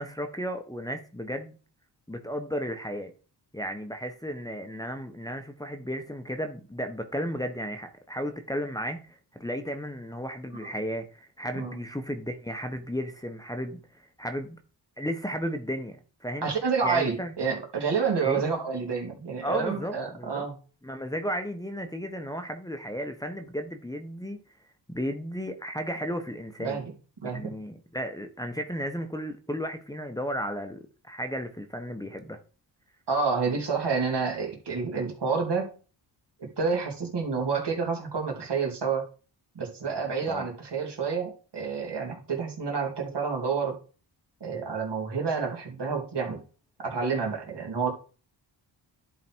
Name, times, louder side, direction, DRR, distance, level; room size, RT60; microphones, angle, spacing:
voice 1, 0.0-1.6 2.1-3.1 3.5-14.6 15.0-16.5 16.8-17.3 18.2-18.4 19.4-20.4 20.8-24.4 24.9-26.8 27.2-32.4 40.3-40.5, equal, 10° left, 1.1 m, -34 dB
voice 2, 16.4-20.6 26.6-26.8 27.2-27.5 33.1-35.7 36.4-39.1 39.5-43.8 44.4-46.4 46.8-47.9, right 5 dB, 60° right, 2.8 m, -29 dB
11.0 x 3.9 x 4.6 m
cardioid pair, 65°, 45 cm